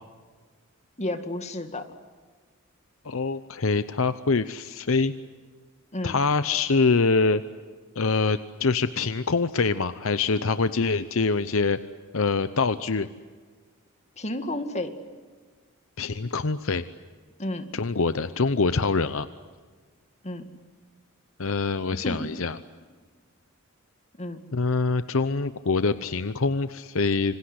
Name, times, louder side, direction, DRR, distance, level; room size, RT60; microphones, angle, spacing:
voice 1, 1.0-1.8 5.9-6.2 14.2-14.9 17.4-17.7 20.2-20.5 22.0-22.2 24.2-24.4, left 1 dB, 30° left, 7 dB, 2.1 m, -31 dB
voice 2, 3.0-5.1 6.0-7.4 8.0-11.8 12.1-13.1 16.0-16.8 17.7-19.3 21.4-22.6 24.5-27.3, left 4 dB, 65° left, 12 dB, 0.8 m, -24 dB
27.0 x 26.0 x 8.1 m, 1.5 s
head